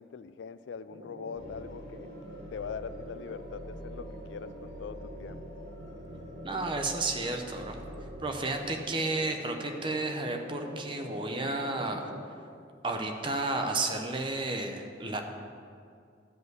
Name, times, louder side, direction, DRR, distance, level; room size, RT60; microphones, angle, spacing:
voice 1, 0.0-2.1 2.5-5.4, left 6 dB, 75° left, 13 dB, 0.4 m, -42 dB
sound 1, 0.9-12.2, equal, 50° right, 1.5 m, -45 dB
sound 2, 1.3-8.1, equal, 25° left, 2.8 m, -48 dB
voice 2, 6.4-7.8 8.2-12.1 12.8-15.2, right 2 dB, 25° right, 4 dB, 0.7 m, -32 dB
12.5 x 5.4 x 7.8 m, 2.3 s
head